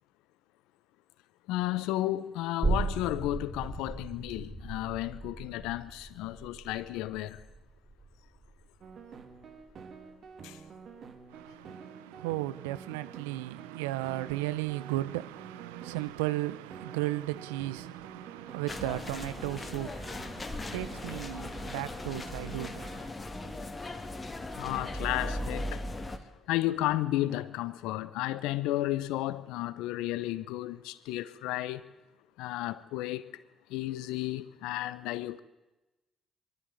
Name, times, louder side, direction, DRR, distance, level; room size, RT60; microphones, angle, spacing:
voice 1, 1.5-7.4 10.4-10.6 24.6-25.8 26.5-31.8 32.4-33.4 33.7-35.4, left 15 dB, 80° left, 0.8 m, -33 dB
sound 1, 2.6-9.9 10.3-10.4, right 3 dB, 15° right, 3.7 m, -37 dB
sound 2, 8.8-20.4 20.9-21.0 21.5-21.7 22.2-22.3 22.8-22.9 23.4-23.6 24.1-24.2 24.9-25.1 25.7-25.8 26.5-26.6 27.3-27.4, right 5 dB, 60° right, 2.3 m, -49 dB
voice 2, 11.3-23.1, right 16 dB, 90° right, 0.6 m, -35 dB
sound 3, 18.7-26.2, left 1 dB, 30° left, 2.4 m, -38 dB
23.0 x 13.0 x 9.3 m
hypercardioid pair, 45°, 0 cm